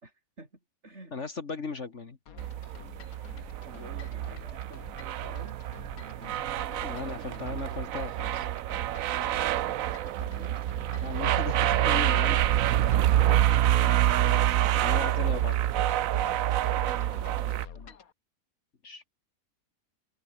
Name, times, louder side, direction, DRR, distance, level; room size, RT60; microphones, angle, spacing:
voice 1, 0.0-0.5 0.8-1.1 3.6-5.6 6.0-7.7 10.0-10.7 16.8-18.0, right 2 dB, 50° right, 6.1 m, -50 dB
voice 2, 1.1-2.2 6.8-8.5 11.0-12.4 13.8-13.9 14.7-15.5 18.8-19.0, left 4 dB, 55° left, 2.2 m, -36 dB
sound 1, 2.3-18.1, left 7 dB, 85° left, 1.9 m, -49 dB
sound 2, 2.4-17.7, right 12 dB, 75° right, 1.1 m, -27 dB
open air
omnidirectional pair, 1.5 m